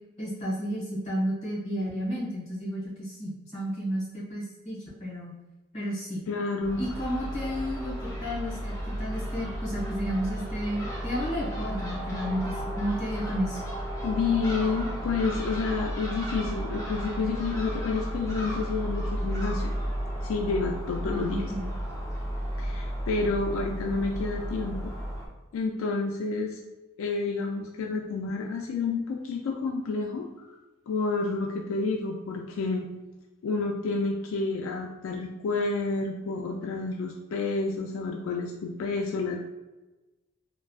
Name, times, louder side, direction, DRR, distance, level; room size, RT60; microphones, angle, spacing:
voice 1, 0.2-5.4 5.7-6.2 6.8-13.6 21.0-21.4, equal, 35° left, -7 dB, 1.4 m, -32 dB
voice 2, 6.3-6.8 14.0-19.7 20.2-21.5 22.6-24.9 25.5-26.6 27.0-30.6 30.9-32.9 33.4-39.5, left 4 dB, 80° left, 2 dB, 0.3 m, -29 dB
Crow / Gull seagull, 6.6-25.3, equal, 15° left, 0.6 m, -33 dB
3.5 x 2.1 x 2.3 m, 1.1 s
head